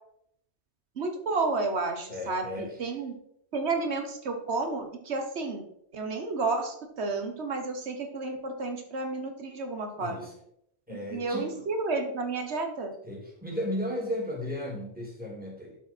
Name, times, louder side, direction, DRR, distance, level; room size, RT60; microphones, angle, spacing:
voice 1, 1.0-3.2 3.5-5.6 5.9-10.3 10.9-12.9, right 3 dB, 85° right, 4 dB, 1.4 m, -31 dB
voice 2, 2.1-2.8 10.0-10.3 10.9-11.7 13.0-15.8, left 1 dB, 10° right, -3 dB, 2.7 m, -35 dB
12.5 x 4.7 x 4.4 m, 0.73 s
omnidirectional pair, 1.1 m